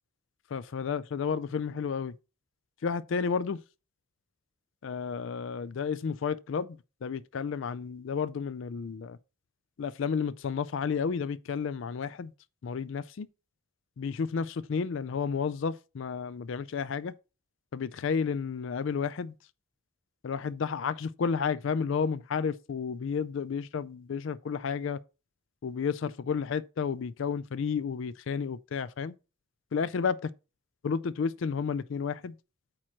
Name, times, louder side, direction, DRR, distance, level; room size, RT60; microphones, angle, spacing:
voice 1, 0.5-2.1 2.8-3.6 4.8-9.2 9.8-12.3 12.6-13.3 14.0-17.1 17.7-19.3 20.2-25.0 25.6-29.1 29.7-30.2 30.8-32.3, left 6 dB, 65° left, 0.4 m, -31 dB
8.6 x 3.0 x 6.2 m
head